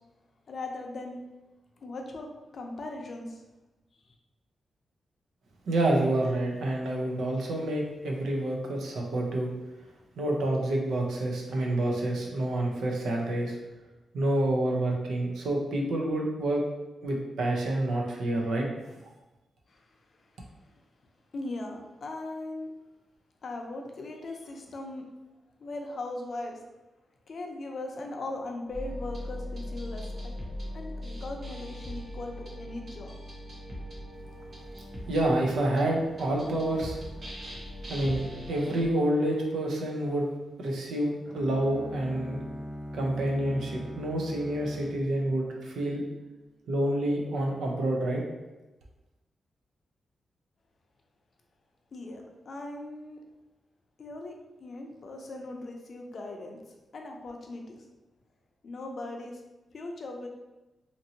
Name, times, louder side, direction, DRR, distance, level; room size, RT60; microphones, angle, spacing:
voice 1, 0.5-1.2 1.8-2.3 2.5-3.4 19.7-19.8 21.3-22.7 23.4-25.0 25.6-26.6 27.3-30.3 30.7-33.1 51.9-53.2 54.0-54.3 54.6-56.6 56.9-57.8 58.6-59.4 59.7-60.3, left 2 dB, 55° left, 2 dB, 0.5 m, -39 dB
voice 2, 5.7-9.5 10.2-13.6 14.1-16.6 17.0-18.7 35.1-37.0 37.9-40.3 40.6-42.4 42.9-46.0 46.7-48.2, right 1 dB, 85° right, -1 dB, 0.6 m, -28 dB
sound 1, 28.7-38.8, equal, 50° right, 1.0 m, -40 dB
Bowed string instrument, 41.2-46.2, equal, ahead, 1.0 m, -41 dB
2.9 x 2.6 x 2.8 m, 1.1 s
cardioid pair, 90°, 0 cm